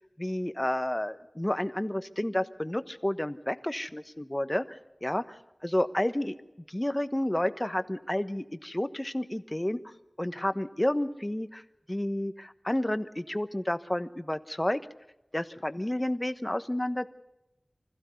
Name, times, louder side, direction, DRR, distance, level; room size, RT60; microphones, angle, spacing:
voice 1, 0.2-6.4 6.7-9.8 10.2-11.6 11.9-14.8 15.3-17.1, left 1 dB, 20° left, 12 dB, 1.2 m, -30 dB
25.0 x 15.0 x 8.3 m, 0.95 s
wide cardioid pair, 50°, 0 cm